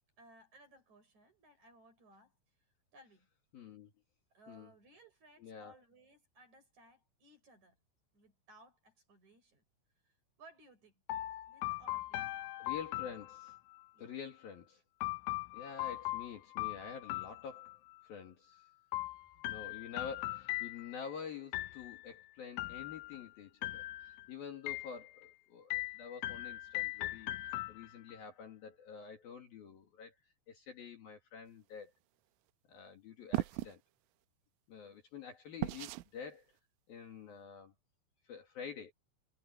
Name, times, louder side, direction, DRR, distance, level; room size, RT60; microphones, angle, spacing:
voice 1, 0.2-2.4 2.9-3.3 4.3-7.8 8.1-9.6 10.0-11.0 11.5-12.3 13.9-14.1, right 2 dB, 35° right, 7.7 m, -61 dB
voice 2, 3.5-3.9 4.5-4.7 5.4-5.7 12.6-13.6 14.0-14.8 15.5-17.7 18.0-18.7 19.4-27.3 27.7-30.1 30.5-31.9 32.7-33.8 34.7-36.5 36.9-37.7 38.3-38.9, left 7 dB, 55° left, 3.7 m, -48 dB
sound 1, 11.1-13.8 15.0-18.0 18.9-21.1 21.5-22.1 22.6-23.3 23.6-24.3 24.7-25.3 25.7-28.2, left 18 dB, 85° left, 3.5 m, -40 dB
sound 2, 33.3-33.7 35.6-36.1, right 18 dB, 85° right, 3.2 m, -35 dB
omnidirectional pair, 5.6 m